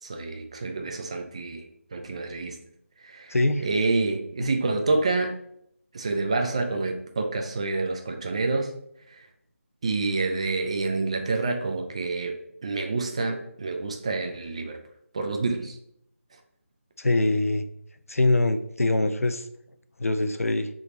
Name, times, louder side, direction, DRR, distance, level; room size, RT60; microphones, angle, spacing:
voice 1, 0.0-1.6 1.9-2.6 3.0-5.4 5.9-8.7 9.1-9.3 9.8-14.8 15.1-15.8, right 3 dB, 25° right, 4 dB, 0.4 m, -28 dB
voice 2, 3.3-3.7 4.4-4.5 17.0-17.6 18.1-19.5 20.0-20.7, left 2 dB, 80° left, 9 dB, 0.4 m, -23 dB
3.5 x 3.0 x 3.8 m, 0.73 s
figure-of-eight pair, 160°, 8 cm